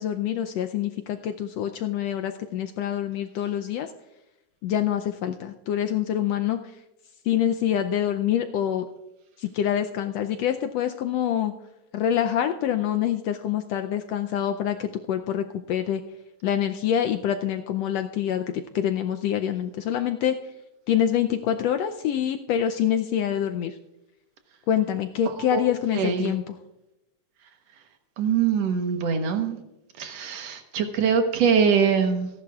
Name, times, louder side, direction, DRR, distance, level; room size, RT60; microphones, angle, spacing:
voice 1, 0.0-3.9 4.6-6.6 7.2-8.8 9.4-11.5 11.9-16.0 16.4-20.3 20.9-23.7 24.7-26.5, left 10 dB, 80° left, 7 dB, 1.5 m, -26 dB
voice 2, 25.9-26.3 28.2-29.6 30.0-32.3, right 6 dB, 65° right, 5 dB, 2.2 m, -23 dB
27.0 x 11.0 x 2.4 m, 0.93 s
omnidirectional pair, 3.3 m